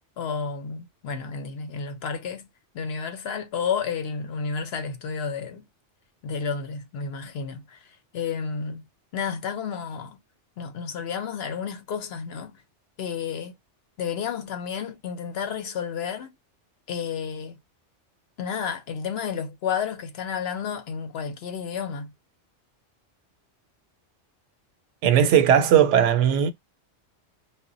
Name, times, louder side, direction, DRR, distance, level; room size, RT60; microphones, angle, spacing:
voice 1, 0.2-2.5 2.7-5.7 6.2-8.8 9.1-10.2 10.6-12.5 13.0-13.5 14.0-16.3 16.9-17.6 18.4-22.1, left 6 dB, 65° left, 0.8 m, -31 dB
voice 2, 25.0-26.5, right 9 dB, 85° right, 0.9 m, -18 dB
2.1 x 2.1 x 3.7 m
omnidirectional pair, 1.2 m